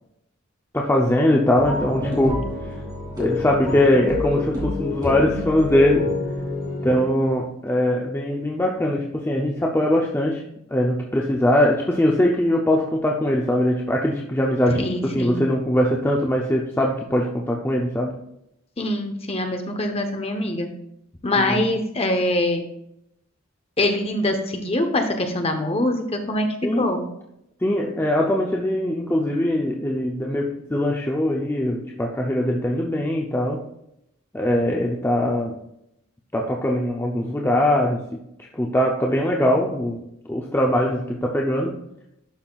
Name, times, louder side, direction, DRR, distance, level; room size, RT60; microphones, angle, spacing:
voice 1, 0.7-2.5 3.2-6.1 6.8-10.4 10.7-18.2 21.4-21.6 26.6-26.9 27.6-33.6 34.3-35.6 36.3-38.2 38.5-40.0 40.3-41.8, left 1 dB, 10° left, -1 dB, 0.6 m, -21 dB
sound 1, 1.5-7.0, left 3 dB, 20° right, 3.0 m, -27 dB
voice 2, 14.8-15.4 18.8-20.7 21.2-22.6 23.8-27.0, left 1 dB, 30° left, 4 dB, 0.9 m, -24 dB
11.5 x 5.7 x 2.4 m, 0.79 s
head